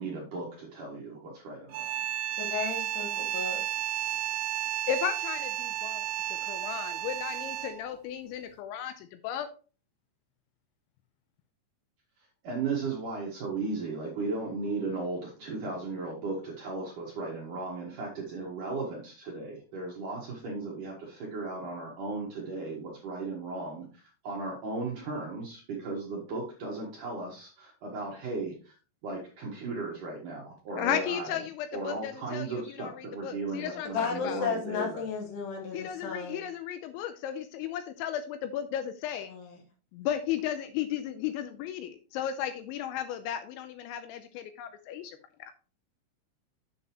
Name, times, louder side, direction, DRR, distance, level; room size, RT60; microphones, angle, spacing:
voice 1, 0.0-1.9 12.4-28.7 29.0-31.4 31.7-35.1, right 3 dB, 60° right, -2 dB, 2.2 m, -36 dB
sound 1, 1.7-7.9, right 12 dB, 85° right, 2.4 m, -33 dB
voice 2, 2.3-3.6 33.9-36.4 39.3-39.5, left 5 dB, 65° left, 3 dB, 3.1 m, -34 dB
voice 3, 4.9-6.0 6.4-9.5 30.8-34.4 35.7-39.3 39.9-45.5, left 10 dB, 80° left, 9 dB, 2.8 m, -35 dB
7.9 x 7.6 x 3.0 m, 0.36 s
omnidirectional pair, 5.7 m